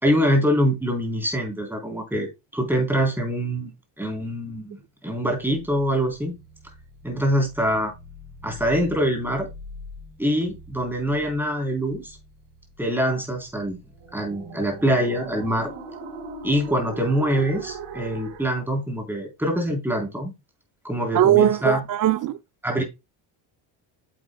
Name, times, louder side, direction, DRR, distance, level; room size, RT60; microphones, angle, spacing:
voice 1, 0.0-3.7 4.0-6.3 7.0-7.9 8.4-9.5 10.2-12.2 12.8-13.8 14.1-15.7 16.4-20.3 20.8-21.8 22.6-22.8, equal, 5° right, 3.7 m, -24 dB
sound 1, 5.4-18.6, right 2 dB, 75° right, 3.8 m, -41 dB
voice 2, 21.1-22.4, right 11 dB, 40° right, 0.5 m, -19 dB
9.4 x 7.8 x 2.3 m
cardioid pair, 125°, 50 cm